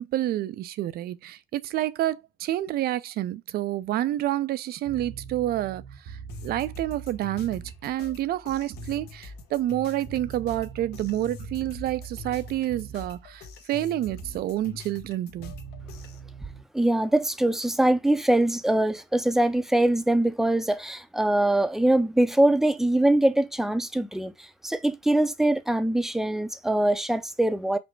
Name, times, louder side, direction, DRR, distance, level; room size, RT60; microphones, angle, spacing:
voice 1, 0.0-15.5, right 13 dB, 65° right, 0.5 m, -29 dB
sound 1, 4.8-7.9 8.7-9.1 10.1-13.2 14.1-14.5 15.4-16.6, right 6 dB, 80° right, 1.1 m, -42 dB
sound 2, 6.3-16.2, left 5 dB, 75° left, 1.1 m, -45 dB
voice 2, 16.7-27.8, right 1 dB, ahead, 0.5 m, -23 dB
5.2 x 2.1 x 4.5 m
cardioid pair, 110°, 17 cm